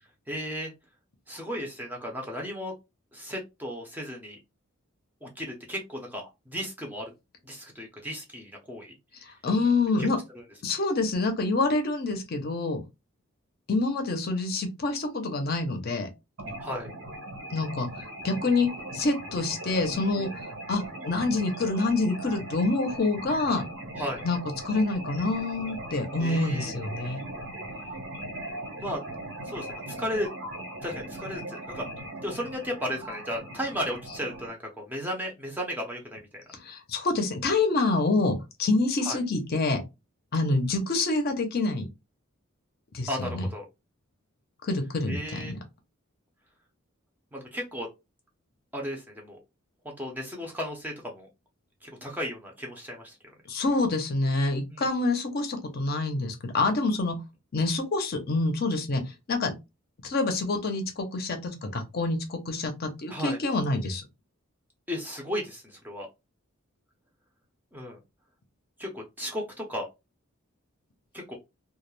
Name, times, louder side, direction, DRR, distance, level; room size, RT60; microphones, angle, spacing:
voice 1, 0.3-0.7 1.3-2.7 3.1-4.4 5.2-7.1 7.4-8.9 10.3-10.4 16.6-16.9 24.0-24.2 26.2-26.7 28.8-29.0 29.4-30.3 30.8-31.8 32.2-36.4 39.1-39.2 43.1-43.6 45.1-45.6 47.3-47.9 48.7-49.4 49.8-51.3 51.8-53.2 54.7-54.9 63.1-63.4 64.9-66.1 67.7-68.0 68.8-69.9 71.1-71.3, equal, 10° right, 0.5 m, -35 dB
voice 2, 9.2-10.2 10.6-12.8 13.7-16.1 17.5-20.3 20.7-23.7 24.2-24.4 24.6-27.2 36.6-39.8 40.3-41.9 42.9-43.5 44.6-45.6 53.5-57.2 57.5-59.0 59.3-59.5 60.0-64.0, left 3 dB, 45° left, 0.5 m, -27 dB
sound 1, 16.4-34.5, right 1 dB, 90° right, 1.2 m, -39 dB
2.2 x 2.1 x 3.0 m
head